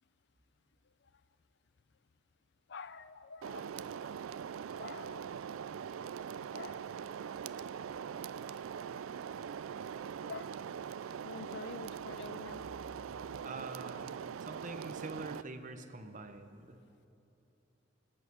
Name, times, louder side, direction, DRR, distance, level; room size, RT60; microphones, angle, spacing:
voice 1, 2.7-3.7 4.8-5.4 6.5-6.8 10.3-10.5 11.2-12.6, left 5 dB, 55° left, 14 dB, 0.5 m, -47 dB
sound 1, 3.4-15.4, right 7 dB, 80° right, 0.3 m, -42 dB
voice 2, 13.4-14.1 14.4-16.8, right 3 dB, 40° right, 8 dB, 0.9 m, -45 dB
24.0 x 9.0 x 6.2 m, 2.8 s
head